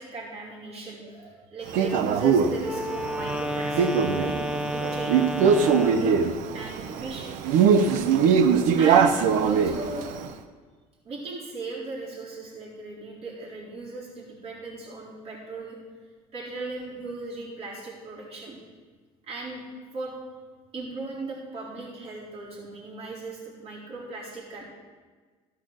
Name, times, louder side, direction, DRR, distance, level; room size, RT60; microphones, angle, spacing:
voice 1, 0.0-6.2 6.5-7.3 8.7-10.1 11.0-15.8 16.3-18.6 19.2-19.6 19.9-20.1 20.7-24.6, right 3 dB, 50° right, -6 dB, 3.9 m, -37 dB
Male speech man speaking, 1.7-10.3, right 6 dB, 70° right, 0.8 m, -22 dB
Wind instrument woodwind instrument, 2.6-6.2, equal, 5° right, 0.7 m, -31 dB
14.0 x 5.7 x 6.3 m, 1.5 s
supercardioid pair, 110°, 14 cm